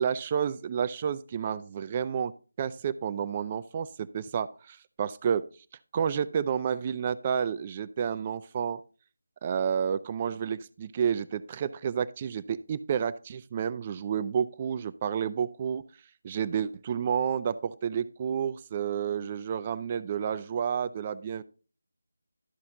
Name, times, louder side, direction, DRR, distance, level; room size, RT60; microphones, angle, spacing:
voice 1, 0.0-2.3 2.6-5.4 5.9-8.8 9.4-15.8 16.2-21.4, right 7 dB, 25° right, 15 dB, 0.3 m, -30 dB
12.5 x 5.6 x 3.7 m, 0.36 s
figure-of-eight pair, 160°, 0 cm